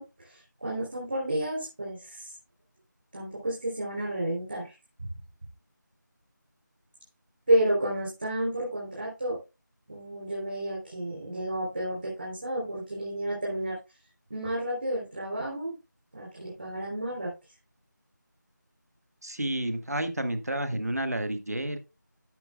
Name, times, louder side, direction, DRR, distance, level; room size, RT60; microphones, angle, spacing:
voice 1, 0.0-2.3 3.1-4.8 7.5-9.4 9.9-13.8 14.3-15.8 16.1-17.3, right 1 dB, 30° right, -4 dB, 3.5 m, -31 dB
voice 2, 19.2-21.8, right 1 dB, 55° right, 8 dB, 1.6 m, -30 dB
14.5 x 6.1 x 2.3 m, 0.27 s
figure-of-eight pair, 175°, 10 cm